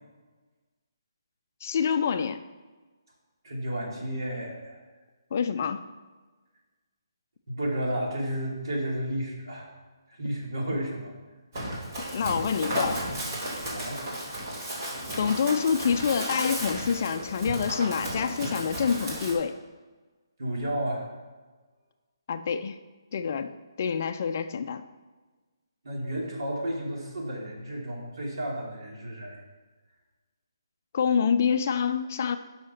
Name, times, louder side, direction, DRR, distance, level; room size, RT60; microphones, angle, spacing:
voice 1, 1.6-2.4 5.3-5.8 12.1-13.1 15.2-19.5 22.3-22.8 23.1-23.5 23.8-24.8 30.9-32.4, left 6 dB, 35° left, 10 dB, 0.4 m, -26 dB
voice 2, 3.4-4.8 7.5-9.7 10.1-11.1 13.7-14.0 20.4-21.1 25.8-29.4, right 1 dB, 70° right, -2 dB, 2.9 m, -32 dB
Run, 11.5-19.3, right 1 dB, 35° right, 2.4 m, -34 dB
7.8 x 5.7 x 5.9 m, 1.3 s
hypercardioid pair, 170°, 2 cm